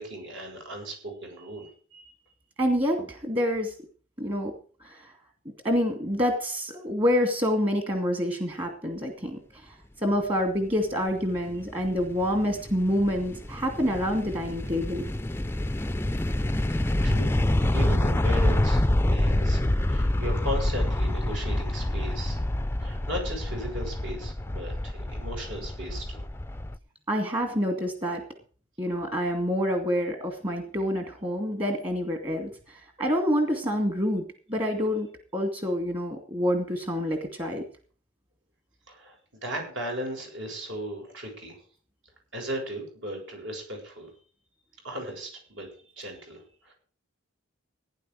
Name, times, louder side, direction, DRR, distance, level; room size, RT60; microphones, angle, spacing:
voice 1, 0.0-2.1 16.1-16.4 16.7-17.4 17.7-19.6 19.9-22.4 22.8-26.3 38.9-39.2 39.4-41.6 42.3-44.1 44.8-45.7 46.0-46.7, equal, 60° right, 1 dB, 7.7 m, -37 dB
voice 2, 2.6-3.7 4.2-4.5 4.8-5.1 5.6-9.8 10.0-15.0 27.1-28.2 28.8-37.6, equal, 25° right, 5 dB, 2.4 m, -27 dB
sound 1, 11.3-26.8, left 1 dB, 10° left, 0.6 m, -27 dB
17.0 x 10.0 x 5.0 m, 0.43 s
head